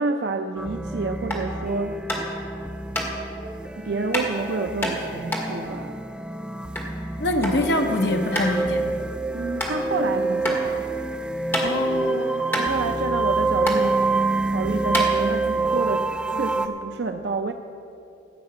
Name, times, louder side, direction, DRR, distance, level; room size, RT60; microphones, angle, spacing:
voice 1, 0.0-2.0 3.8-6.0 9.3-10.9 12.6-14.0 14.5-17.5, right 3 dB, 65° right, 6 dB, 0.5 m, -29 dB
sound 1, 0.6-16.7, right 3 dB, 5° right, 0.3 m, -27 dB
sound 2, 1.2-1.5 2.1-2.4 2.9-3.1 4.1-4.3 4.8-6.9 7.2-7.6 7.9-8.0 8.3-8.5 9.0-9.1 9.6-9.7 10.4-10.6 11.0-12.0 12.2-12.3 12.5-13.3 13.6-13.8 14.4-14.5 14.9-15.6, equal, 10° left, 1.8 m, -28 dB
voice 2, 7.2-8.9 11.6-12.5, left 1 dB, 65° left, 4 dB, 0.9 m, -24 dB
15.0 x 5.7 x 8.6 m, 2.8 s
head